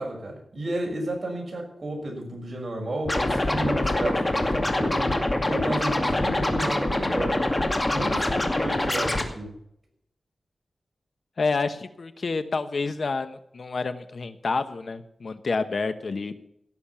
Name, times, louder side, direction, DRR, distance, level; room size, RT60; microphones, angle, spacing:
voice 1, 0.0-7.5 7.9-9.5, right 1 dB, 45° right, 0 dB, 6.4 m, -32 dB
Scratching (performance technique), 3.1-9.2, left 1 dB, 25° left, 2.3 m, -25 dB
voice 2, 11.4-16.3, left 4 dB, 60° left, 10 dB, 1.0 m, -28 dB
16.5 x 7.3 x 7.2 m, 0.75 s
wide cardioid pair, 90°, 0 cm